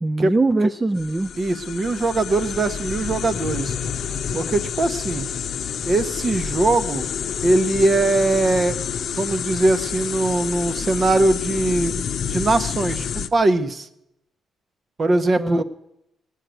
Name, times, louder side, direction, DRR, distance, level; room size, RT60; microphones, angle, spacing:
voice 1, 0.0-1.3 15.4-15.6, right 2 dB, 20° right, 10 dB, 0.4 m, -21 dB
sound 1, 1.0-13.3, left 7 dB, 60° left, 0.7 m, -28 dB
voice 2, 1.4-3.8 4.3-5.3 5.8-7.1 7.4-8.8 9.2-13.9 15.0-15.6, right 2 dB, 35° right, 11 dB, 1.0 m, -21 dB
18.5 x 6.6 x 9.2 m, 0.84 s
cardioid pair, 90°, 0 cm